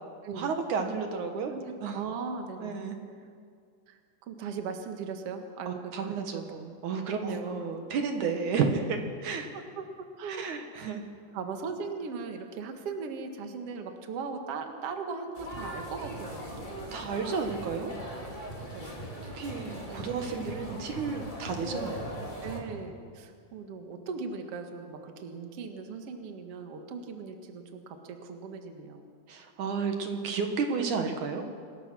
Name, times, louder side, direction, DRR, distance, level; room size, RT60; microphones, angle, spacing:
voice 1, 0.3-1.5 1.8-2.0 2.6-3.0 5.7-9.5 10.3-11.1 16.9-17.9 19.2-22.1 29.3-31.5, right 5 dB, 70° right, 5 dB, 2.9 m, -32 dB
voice 2, 1.5-2.7 3.9-6.2 6.5-6.6 7.0-7.4 9.5-10.5 10.7-10.9 11.3-16.7 18.7-19.0 19.9-20.5 22.4-29.0, right 5 dB, 50° right, 4 dB, 2.4 m, -39 dB
sound 1, 15.3-22.6, equal, 15° left, 3.2 m, -39 dB
27.0 x 20.0 x 6.3 m, 2.2 s
omnidirectional pair, 3.7 m